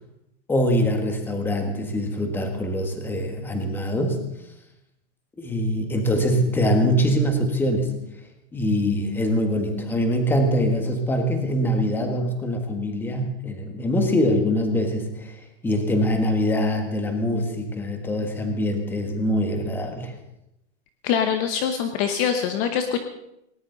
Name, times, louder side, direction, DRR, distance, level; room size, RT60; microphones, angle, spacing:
voice 1, 0.5-4.2 5.4-7.9 8.5-15.4 15.6-20.1, equal, 5° left, 4 dB, 1.5 m, -23 dB
voice 2, 21.0-23.0, left 8 dB, 30° left, 7 dB, 1.0 m, -23 dB
19.5 x 18.5 x 4.0 m, 0.84 s
supercardioid pair, 170°, 35 cm